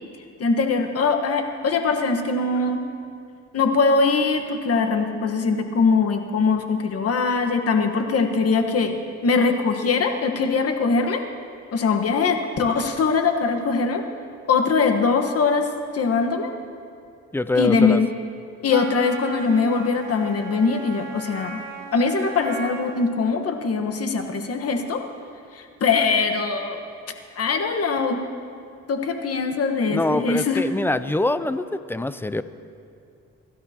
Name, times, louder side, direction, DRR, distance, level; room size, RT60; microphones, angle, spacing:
voice 1, 0.4-2.8 3.5-11.2 11.7-14.0 14.5-15.7 15.9-16.5 17.5-18.1 18.6-21.6 21.9-25.0 25.5-26.8 27.4-28.2 28.9-30.6, left 4 dB, 50° left, 5 dB, 1.4 m, -22 dB
voice 2, 17.3-18.0 29.9-32.4, left 2 dB, 5° left, 13 dB, 0.5 m, -24 dB
Wind instrument woodwind instrument, 18.7-23.2, right 4 dB, 60° right, 1.9 m, -37 dB
26.5 x 12.5 x 3.0 m, 2.4 s
cardioid pair, 90°, 30 cm